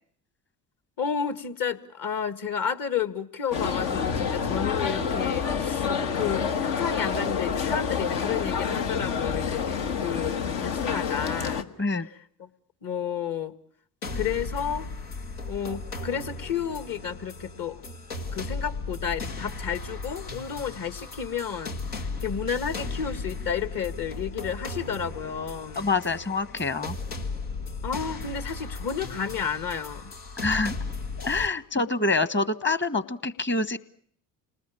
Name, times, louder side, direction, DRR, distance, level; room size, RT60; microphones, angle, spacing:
voice 1, 1.0-5.9 6.1-11.7 12.0-12.5 12.8-13.5 14.1-14.9 15.5-17.8 18.3-25.9 27.8-30.1, left 7 dB, 45° left, 12 dB, 2.0 m, -31 dB
sound 1, 3.5-11.6, left 6 dB, 70° left, 1.5 m, -28 dB
sound 2, 14.0-31.5, left 3 dB, 90° left, 1.9 m, -36 dB
voice 2, 25.7-27.0 30.4-30.7 31.2-33.8, left 3 dB, 25° left, 15 dB, 1.4 m, -26 dB
28.0 x 20.0 x 8.7 m, 0.63 s
hypercardioid pair, 55°, 44 cm